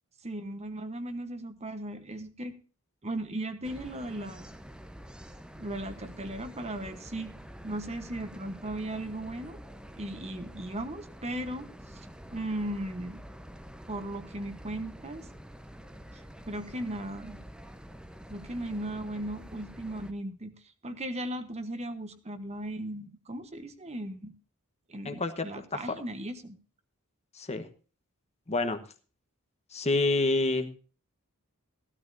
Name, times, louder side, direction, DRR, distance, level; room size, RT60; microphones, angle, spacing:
voice 1, 0.2-2.5 3.0-4.5 5.6-7.3 7.6-9.6 10.0-12.1 12.3-13.2 13.9-15.3 16.1-17.4 18.3-20.5 20.8-24.3 24.9-26.6, right 1 dB, 30° right, 9 dB, 1.1 m, -37 dB
sound 1, 3.6-20.1, equal, 5° right, 0.8 m, -47 dB
voice 2, 25.0-26.0 27.3-27.7 28.5-28.8 29.7-30.7, left 2 dB, 30° left, 8 dB, 1.2 m, -28 dB
15.5 x 12.5 x 2.7 m, 0.36 s
head